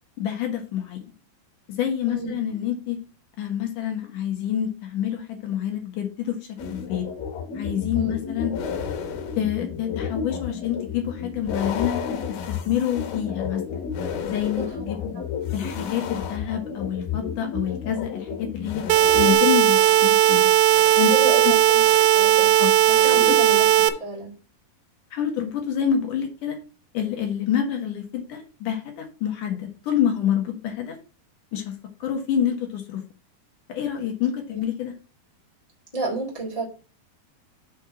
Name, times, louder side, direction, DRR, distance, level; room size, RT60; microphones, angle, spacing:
voice 1, 0.2-1.0 1.7-3.0 3.4-7.1 7.5-8.6 9.4-13.8 14.2-15.1 15.5-18.8 19.1-20.5 21.0-21.1 21.4-21.5 22.6-22.7 23.0-23.3 25.1-26.6 26.9-31.0 31.5-31.7 32.0-33.0 33.7-34.9, left 9 dB, 65° left, 2.6 m, -27 dB
sound 1, 6.6-19.3, left 6 dB, 80° left, 3.3 m, -31 dB
voice 2, 14.6-14.9 21.1-21.9 22.1-22.5 22.9-24.3 35.9-36.6, right 3 dB, 30° left, 0.6 m, -30 dB
sound 2, 18.9-23.9, right 13 dB, 90° right, 2.7 m, -17 dB
6.2 x 4.4 x 5.9 m
omnidirectional pair, 4.4 m